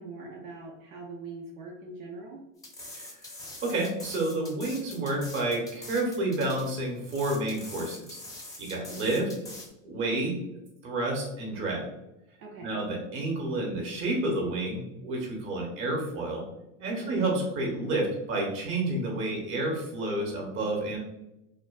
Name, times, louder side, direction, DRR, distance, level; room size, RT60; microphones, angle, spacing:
voice 1, 0.0-2.4 12.4-12.8 17.0-17.4, right 3 dB, 85° right, -2 dB, 0.6 m, -42 dB
sound 1, 2.6-9.7, left 2 dB, 10° left, 0.5 m, -44 dB
voice 2, 3.6-8.2 8.6-9.3 9.8-10.4 10.8-11.8 12.6-16.4 16.8-21.0, right 2 dB, 30° right, 0 dB, 0.8 m, -30 dB
2.5 x 2.2 x 2.2 m, 0.92 s
hypercardioid pair, 95°, 41 cm